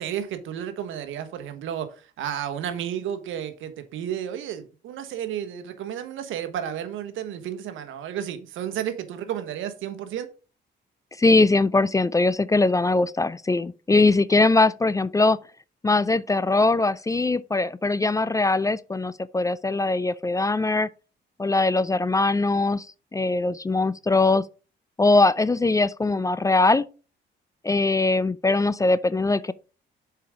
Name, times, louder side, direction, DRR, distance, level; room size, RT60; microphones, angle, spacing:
voice 1, 0.0-10.3, right 9 dB, 85° right, 1.2 m, -32 dB
voice 2, 11.2-15.4 15.8-20.9 21.4-22.9 23.1-24.4 25.0-26.8 27.6-29.5, left 3 dB, 15° left, 0.4 m, -21 dB
7.0 x 4.8 x 4.9 m
cardioid pair, 90°, 20 cm